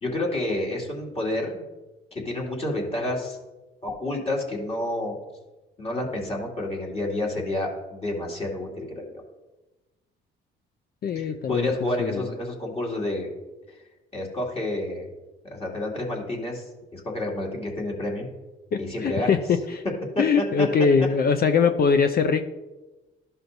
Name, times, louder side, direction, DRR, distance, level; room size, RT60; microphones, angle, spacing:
voice 1, 0.0-1.6 2.1-3.4 3.8-5.2 5.8-9.2 11.1-13.3 13.7-13.8 14.1-15.1 15.4-16.6 16.9-18.3 18.8-19.4 20.4-20.7, left 1 dB, 30° left, -3 dB, 2.5 m, -29 dB
voice 2, 11.0-11.7 12.0-12.3 18.7-19.8 20.2-22.4, left 5 dB, 50° left, 8 dB, 0.5 m, -22 dB
13.0 x 5.6 x 2.7 m, 1.1 s
cardioid pair, 90°, 20 cm